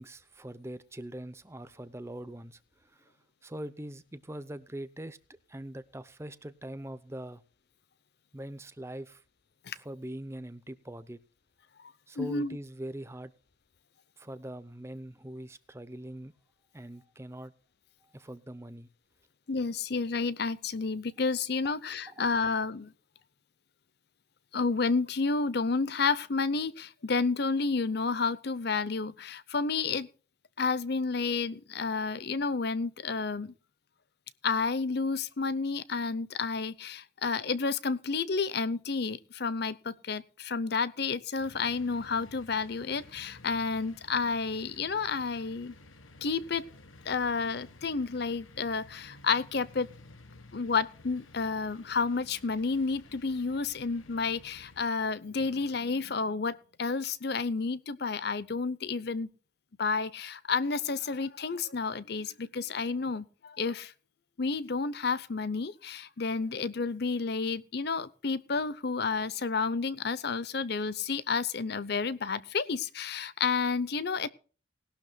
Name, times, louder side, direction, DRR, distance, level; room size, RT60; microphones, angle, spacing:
voice 1, 0.0-3.1 3.4-5.2 5.5-7.4 8.3-9.2 9.8-11.2 12.1-13.3 14.2-16.3 16.7-17.5 18.1-18.9 21.6-21.7 22.1-22.2, right 1 dB, 15° right, 14 dB, 0.6 m, -42 dB
voice 2, 12.2-12.6 19.5-22.9 24.5-30.1 30.6-33.5 34.4-45.7 46.2-46.7 47.1-49.9 50.5-59.3 59.8-63.9 64.4-74.3, left 4 dB, 50° left, 17 dB, 0.7 m, -30 dB
sound 1, 41.4-54.9, left 2 dB, 85° left, 1.2 m, -54 dB
19.5 x 12.0 x 2.3 m, 0.38 s
head